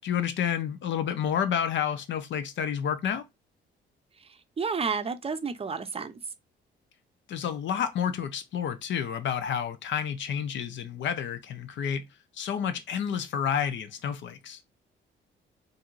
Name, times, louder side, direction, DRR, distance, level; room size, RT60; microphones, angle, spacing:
voice 1, 0.0-3.2 7.3-12.0 12.3-14.6, left 8 dB, 70° left, 0.7 m, -30 dB
voice 2, 4.6-6.2, right 5 dB, 30° right, 0.5 m, -30 dB
4.4 x 2.7 x 2.5 m
cardioid pair, 90°, 20 cm